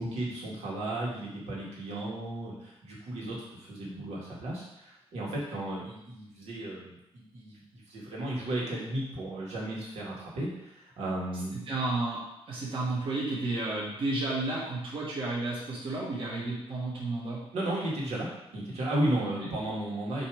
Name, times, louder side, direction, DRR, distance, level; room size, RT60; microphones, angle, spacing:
voice 1, 0.0-11.6 17.5-20.3, right 1 dB, 90° right, -5 dB, 2.0 m, -34 dB
voice 2, 11.7-17.4 19.2-19.5, right 2 dB, 55° right, -6 dB, 1.6 m, -32 dB
7.1 x 3.1 x 4.9 m, 0.83 s
wide cardioid pair, 155°, 10 cm